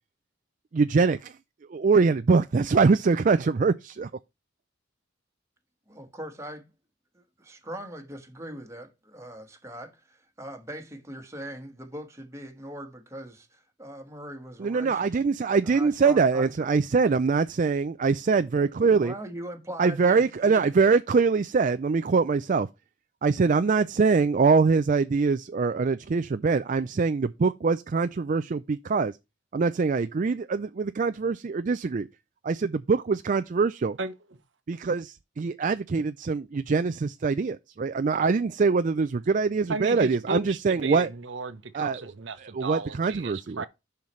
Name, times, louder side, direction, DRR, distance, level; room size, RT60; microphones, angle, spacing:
voice 1, 0.7-1.4 1.7-4.1 14.6-19.1 19.8-22.7 23.2-29.2 29.5-32.1 32.4-34.0 34.7-41.1 41.7-42.1 42.4-43.6, right 4 dB, 40° right, 0.4 m, -23 dB
voice 2, 5.9-6.7 7.1-15.1 15.6-16.5 19.0-20.6, right 1 dB, 15° right, 1.5 m, -41 dB
voice 3, 39.7-43.7, right 3 dB, 70° right, 0.9 m, -34 dB
10.5 x 5.8 x 3.2 m
head